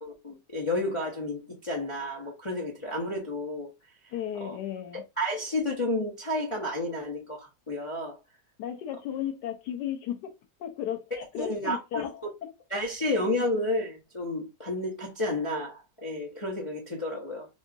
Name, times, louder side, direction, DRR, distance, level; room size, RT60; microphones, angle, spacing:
voice 1, 0.0-3.7 4.4-4.6 4.9-8.2 11.4-12.0 12.7-17.5, left 1 dB, 40° left, 0.4 m, -31 dB
voice 2, 4.1-5.0 8.6-10.3 10.6-12.5, left 10 dB, 75° left, 1.3 m, -35 dB
3.6 x 2.8 x 2.6 m
omnidirectional pair, 1.9 m